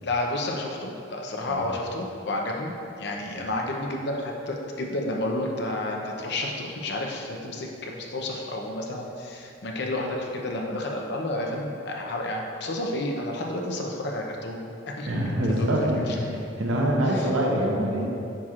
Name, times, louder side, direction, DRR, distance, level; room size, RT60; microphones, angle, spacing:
voice 1, 0.0-15.1 15.4-15.7 16.1-16.2 17.1-17.3, left 1 dB, 60° left, 0 dB, 0.7 m, -31 dB
voice 2, 15.1-18.1, equal, 80° right, -2 dB, 1.0 m, -25 dB
8.7 x 4.4 x 2.5 m, 2.7 s
head